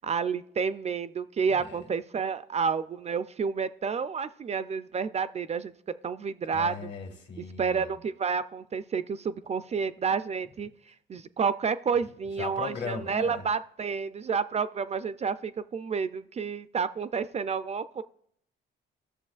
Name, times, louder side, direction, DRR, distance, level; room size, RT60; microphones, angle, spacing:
voice 1, 0.0-5.7 6.0-6.9 7.6-10.7 11.1-18.0, right 6 dB, 35° right, 13 dB, 0.3 m, -30 dB
voice 2, 1.5-1.9 6.5-7.9 12.4-13.4, left 5 dB, 65° left, 3 dB, 1.8 m, -38 dB
13.5 x 6.7 x 2.4 m, 0.68 s
cardioid pair, 90°, 20 cm